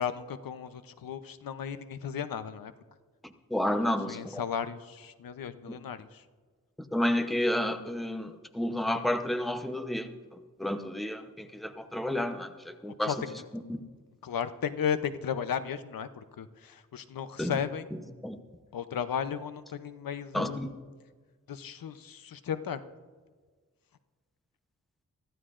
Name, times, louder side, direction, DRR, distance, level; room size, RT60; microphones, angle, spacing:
voice 1, 0.0-2.7 3.8-6.1 13.1-13.2 14.2-17.9 18.7-20.6 21.5-22.8, left 8 dB, 85° left, 11 dB, 0.7 m, -35 dB
voice 2, 3.5-4.4 5.7-5.8 6.9-10.1 10.6-13.1 13.7-13.8 17.4-17.5 18.2-18.4 20.3-20.7, left 1 dB, ahead, 7 dB, 0.8 m, -30 dB
24.0 x 14.5 x 2.5 m, 1.5 s
wide cardioid pair, 125°, 33 cm